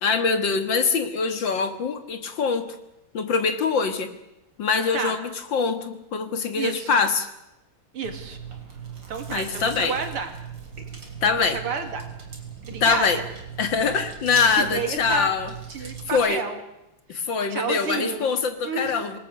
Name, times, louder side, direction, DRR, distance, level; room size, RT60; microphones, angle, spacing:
voice 1, 0.0-2.8 3.1-4.1 4.6-7.3 9.3-10.0 11.2-11.6 12.8-13.2 13.6-15.5 15.8-16.4 17.1-19.2, left 5 dB, 60° left, 8 dB, 2.2 m, -24 dB
voice 2, 6.6-6.9 7.9-8.4 9.1-10.3 11.2-12.1 12.6-13.2 14.5-15.3 15.7-16.6 17.5-18.3 18.6-19.0, right 5 dB, 80° right, 6 dB, 3.2 m, -30 dB
Chewing mastication, 8.0-16.2, right 6 dB, 55° right, 4.2 m, -38 dB
27.0 x 19.0 x 6.5 m, 0.89 s
omnidirectional pair, 2.4 m